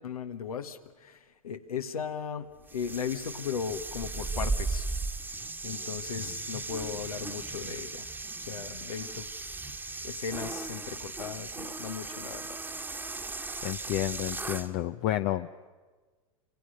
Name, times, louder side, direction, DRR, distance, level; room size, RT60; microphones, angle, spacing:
voice 1, 0.0-1.2 1.4-4.8 5.6-8.1 8.4-9.3 10.0-12.5, left 7 dB, 85° left, 8 dB, 1.5 m, -37 dB
sound 1, 2.7-14.7, right 3 dB, 10° right, 1.4 m, -37 dB
voice 2, 13.6-15.5, left 14 dB, 45° left, 9 dB, 0.7 m, -30 dB
27.5 x 25.0 x 6.5 m, 1.4 s
hypercardioid pair, 100°, 18 cm